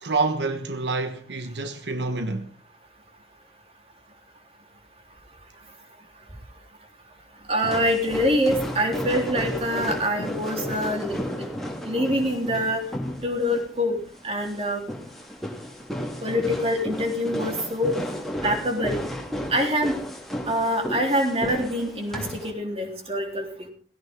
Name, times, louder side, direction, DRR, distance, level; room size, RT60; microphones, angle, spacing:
voice 1, 0.0-2.5, right 3 dB, 85° right, 1.2 m, -27 dB
voice 2, 7.5-11.5 11.8-12.8 13.2-14.0 14.2-14.8 16.2-17.9 18.4-19.0 19.5-20.0 20.5-23.7, equal, 35° right, 3.8 m, -25 dB
sound 1, 7.6-22.5, equal, ahead, 2.5 m, -33 dB
18.5 x 16.5 x 3.8 m
head